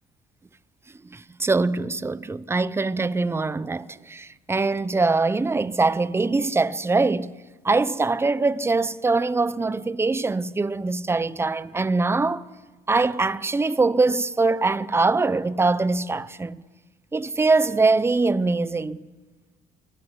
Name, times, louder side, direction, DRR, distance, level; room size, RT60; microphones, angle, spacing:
voice 1, 1.1-7.3 7.6-12.4 12.9-16.6 17.1-19.0, right 3 dB, 15° right, 0.8 m, -23 dB
30.0 x 22.0 x 8.3 m
cardioid pair, 110°, 17 cm